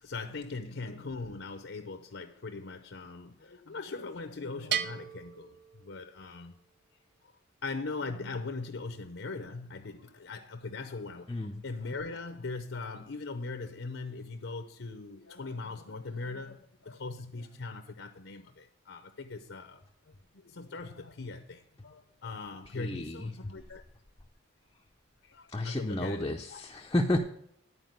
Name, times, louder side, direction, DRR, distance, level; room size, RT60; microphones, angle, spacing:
voice 1, 0.0-6.6 7.2-7.4 7.6-23.8 25.2-26.6, left 3 dB, 65° left, 0.7 m, -40 dB
Bell, 4.7-6.4, right 9 dB, 50° right, 0.5 m, -36 dB
voice 2, 11.3-11.6 22.8-23.3 25.5-27.2, left 1 dB, 20° left, 0.5 m, -31 dB
11.0 x 4.7 x 7.9 m
head